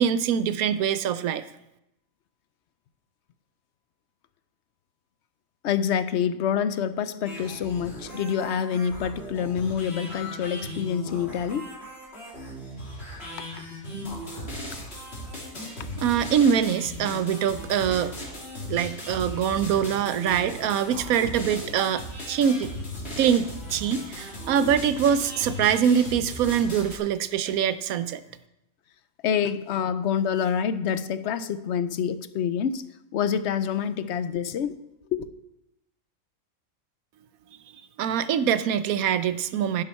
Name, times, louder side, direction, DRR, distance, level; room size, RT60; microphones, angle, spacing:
voice 1, 0.0-1.4 16.0-18.1 18.7-22.7 23.2-28.2 38.0-39.8, right 8 dB, 80° right, 13 dB, 1.1 m, -24 dB
voice 2, 5.6-11.7 13.4-13.7 15.8-15.9 29.2-32.8 33.1-34.8 35.1-35.3, left 8 dB, 60° left, 13 dB, 0.8 m, -27 dB
sound 1, 7.2-27.0, left 1 dB, 45° left, 3.1 m, -37 dB
11.5 x 9.9 x 4.3 m, 0.86 s
omnidirectional pair, 1.5 m